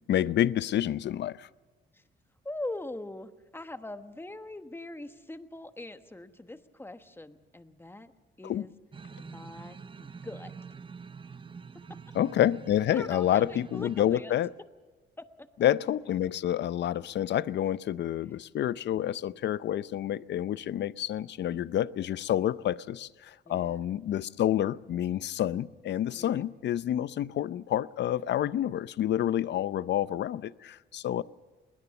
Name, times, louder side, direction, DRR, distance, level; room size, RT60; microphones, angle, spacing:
voice 1, 0.1-1.5 8.4-8.7 12.1-14.5 15.6-31.2, left 11 dB, 60° left, 18 dB, 0.6 m, -28 dB
voice 2, 2.4-8.1 8.4-8.7 9.2-10.5 12.9-14.3 15.2-15.5 18.3-18.4 23.5-23.8 26.2-26.4, left 2 dB, 10° left, 10 dB, 1.2 m, -42 dB
sound 1, 8.9-14.2, right 5 dB, 25° right, 0.6 m, -46 dB
21.0 x 19.5 x 7.0 m, 1.3 s
cardioid pair, 90°, 20 cm